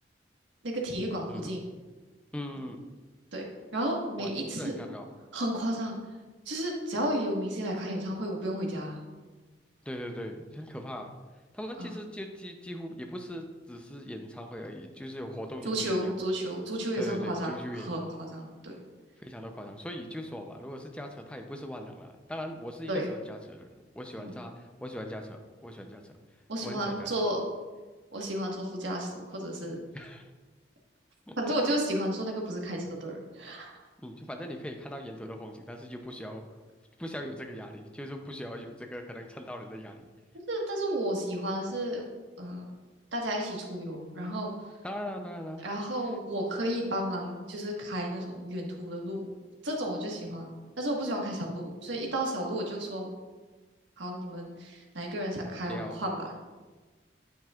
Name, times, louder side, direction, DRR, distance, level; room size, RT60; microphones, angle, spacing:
voice 1, 0.6-1.6 3.3-3.4 3.7-4.7 5.3-5.9 6.4-9.0 11.8-11.9 15.6-18.8 22.9-23.1 24.2-24.3 26.5-27.4 28.1-29.8 31.4-33.8 40.5-42.0 42.4-42.7 43.1-44.5 45.6-49.2 49.6-53.1 54.0-56.1, right 1 dB, 85° right, -1 dB, 1.6 m, -32 dB
voice 2, 2.3-2.8 4.2-5.1 9.8-11.1 11.5-16.2 17.0-18.1 19.2-26.2 26.6-27.1 29.9-30.3 31.3-31.5 34.0-36.4 37.0-40.1 44.8-45.6 46.0-46.1 50.3-50.4 55.7-56.0, equal, 5° left, 4 dB, 0.6 m, -40 dB
9.1 x 7.8 x 2.4 m, 1.3 s
head